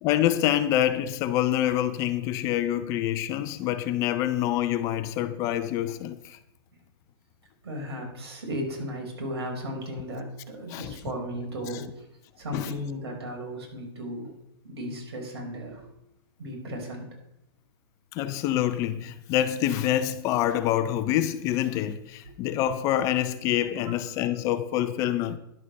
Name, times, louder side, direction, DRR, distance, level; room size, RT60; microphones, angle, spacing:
voice 1, 0.0-6.4 10.7-10.9 12.5-12.7 18.1-25.4, left 12 dB, 25° left, 0.5 m, -26 dB
voice 2, 7.6-12.1 12.4-14.3 14.6-15.9 16.4-17.1 22.2-22.3 23.8-23.9, equal, 80° right, 4.7 m, -35 dB
11.0 x 6.8 x 6.3 m
hypercardioid pair, 160°, 13 cm